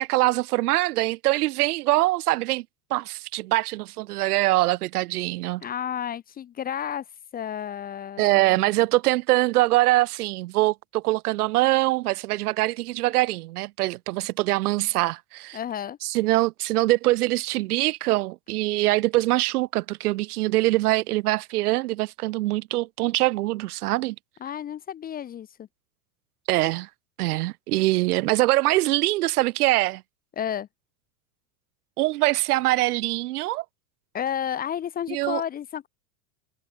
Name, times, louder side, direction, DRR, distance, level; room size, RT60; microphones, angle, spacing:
voice 1, 0.0-2.6 2.9-5.6 8.2-15.6 16.0-24.2 26.5-26.9 27.2-30.0 32.0-33.6 35.1-35.4, right 18 dB, 80° right, 2.3 m, -23 dB
voice 2, 5.6-7.1 7.3-8.7 15.5-16.0 24.4-25.7 30.4-30.7 34.1-35.9, left 9 dB, 20° left, 0.7 m, -31 dB
supercardioid pair, 145°, 44 cm